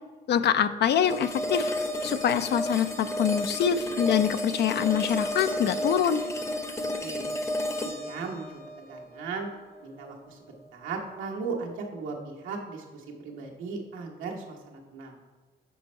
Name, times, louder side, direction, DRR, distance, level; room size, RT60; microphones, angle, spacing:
voice 1, 0.3-1.7 2.0-6.2, left 9 dB, 60° left, 12 dB, 0.4 m, -25 dB
sound 1, 1.0-10.1, left 1 dB, 15° left, 0.7 m, -32 dB
voice 2, 7.8-9.5 9.8-15.2, right 4 dB, 90° right, 0 dB, 1.1 m, -37 dB
6.4 x 4.2 x 4.3 m, 1.4 s
cardioid pair, 90°, 20 cm